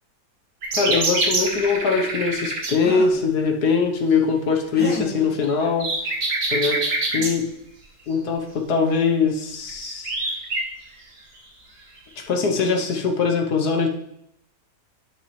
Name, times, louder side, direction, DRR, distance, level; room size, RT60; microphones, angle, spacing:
sound 1, 0.6-2.8 5.4-7.3 9.7-10.7 12.0-12.1, right 2 dB, 55° right, 2.1 m, -25 dB
voice 1, 0.8-5.9 6.5-6.9 7.1-7.5 8.1-10.1 12.2-13.9, left 5 dB, 65° left, 3 dB, 1.5 m, -22 dB
sound 2, 2.7-3.3 4.7-5.3 6.7-6.8 7.1-7.4, right 1 dB, 5° left, 1.3 m, -32 dB
10.5 x 6.3 x 3.2 m, 0.75 s
omnidirectional pair, 1.9 m